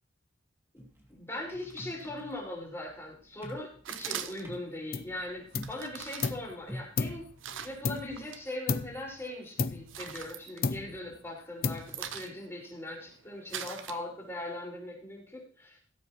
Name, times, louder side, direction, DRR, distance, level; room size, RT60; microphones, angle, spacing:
sound 1, 0.8-7.1, equal, 10° right, 2.1 m, -47 dB
voice 1, 1.1-7.2 7.6-15.8, left 1 dB, 15° left, -3 dB, 4.9 m, -40 dB
sound 2, 3.8-4.7 5.5-8.4 8.8-9.3 9.7-11.2 11.5-14.5, right 9 dB, 70° right, 0.7 m, -42 dB
sound 3, 4.9-5.2 5.5-6.5 7.0-8.3 8.7-9.1 9.6-10.3 10.6-11.1 11.6-12.2, left 5 dB, 50° left, 0.5 m, -33 dB
17.5 x 7.8 x 3.0 m, 0.44 s
head